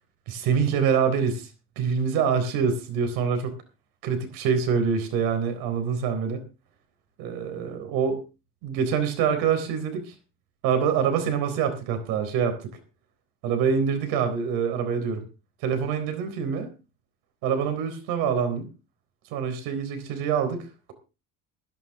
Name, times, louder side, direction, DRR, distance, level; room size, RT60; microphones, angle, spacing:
voice 1, 0.3-1.5 1.8-3.5 4.0-6.4 7.2-8.2 8.6-10.1 10.6-12.6 13.4-15.2 15.6-16.7 17.4-18.7 19.3-20.9, right 6 dB, 85° right, 8 dB, 3.9 m, -25 dB
16.0 x 13.0 x 3.6 m, 0.31 s
cardioid pair, 110°, 36 cm